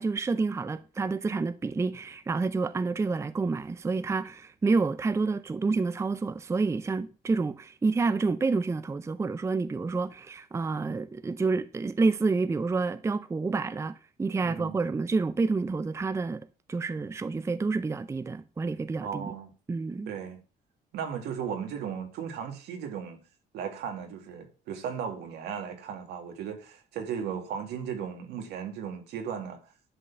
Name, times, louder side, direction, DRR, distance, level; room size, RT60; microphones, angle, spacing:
voice 1, 0.0-16.4 16.7-19.3 19.7-20.1, right 4 dB, 15° right, 0.5 m, -28 dB
voice 2, 14.4-14.7 19.0-19.5 20.1-20.4 20.9-23.2 23.5-29.6, right 7 dB, 80° right, 2.1 m, -36 dB
11.0 x 4.0 x 7.0 m
cardioid pair, 110°, 17 cm